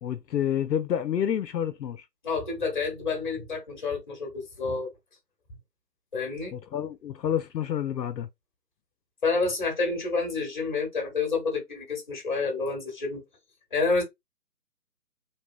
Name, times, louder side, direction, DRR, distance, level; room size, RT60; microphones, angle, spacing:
voice 1, 0.0-2.0 6.5-8.3, left 9 dB, 80° left, 0.5 m, -29 dB
voice 2, 2.2-4.9 6.1-6.5 9.2-13.2 13.7-14.0, left 4 dB, 30° left, 0.8 m, -29 dB
2.8 x 2.2 x 2.3 m
figure-of-eight pair, 145°, 50 cm